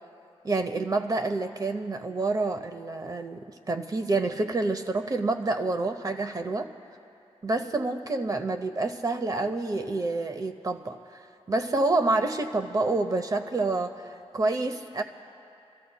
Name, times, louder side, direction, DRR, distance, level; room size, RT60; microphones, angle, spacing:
voice 1, 0.4-6.7 7.4-11.0 11.5-15.0, right 2 dB, 35° right, 6 dB, 0.7 m, -28 dB
27.0 x 14.0 x 2.2 m, 2.7 s
wide cardioid pair, 140°, 11 cm